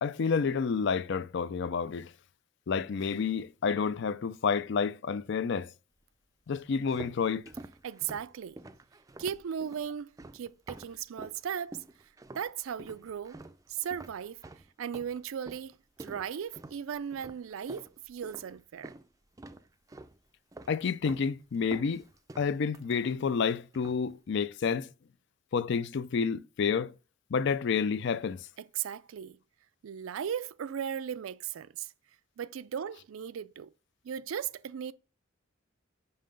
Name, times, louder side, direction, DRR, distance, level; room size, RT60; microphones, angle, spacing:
voice 1, 0.0-2.1 2.7-5.7 6.5-7.4 20.7-22.0 22.4-24.9 25.5-26.9 27.3-28.5, left 5 dB, 60° left, 0.4 m, -29 dB
sound 1, 6.5-11.4 11.7-12.5 12.8-19.1 19.4-20.2 20.5-21.3 21.5-23.4 23.7-24.1, right 2 dB, 15° right, 0.4 m, -48 dB
voice 2, 7.8-8.6 9.2-11.8 12.4-13.4 13.7-14.4 14.8-15.7 16.0-18.9 28.6-29.4 29.8-31.9 32.4-33.7 34.0-34.9, right 8 dB, 80° right, 0.4 m, -37 dB
5.6 x 5.6 x 5.2 m
head